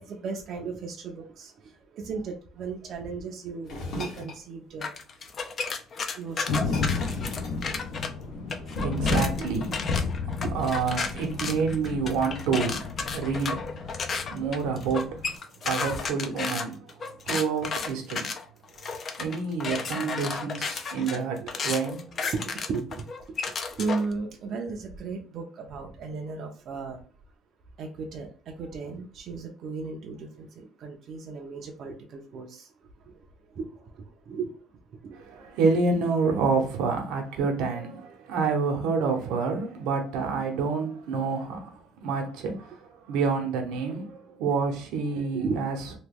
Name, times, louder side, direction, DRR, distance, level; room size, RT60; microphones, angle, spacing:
voice 1, 0.0-1.5 1.9-3.7 4.0-5.0 6.2-6.7 9.4-9.7 10.0-10.1 10.4-10.8 11.0-11.1 12.1-12.2 21.4-21.5 22.2-22.4 22.7-23.0 23.8-27.0 27.8-28.3 28.6-32.6 33.6-33.7 34.3-34.5 35.0-35.1 45.4-45.6, right 4 dB, 45° right, 0.5 m, -35 dB
sound 1, 3.6-4.4 5.8-5.9 6.2-8.3, left 1 dB, 50° left, 1.3 m, -39 dB
sound 2, 4.8-8.1 8.5-24.1, left 4 dB, 30° left, 0.4 m, -33 dB
sound 3, 6.5-15.3, left 4 dB, 75° left, 0.7 m, -32 dB
voice 2, 8.5-9.7 10.5-13.9 14.3-15.2 15.6-18.4 19.2-22.1 35.1-45.8, right 5 dB, 85° right, 0.8 m, -28 dB
2.9 x 2.2 x 3.4 m
cardioid pair, 165°, 0 cm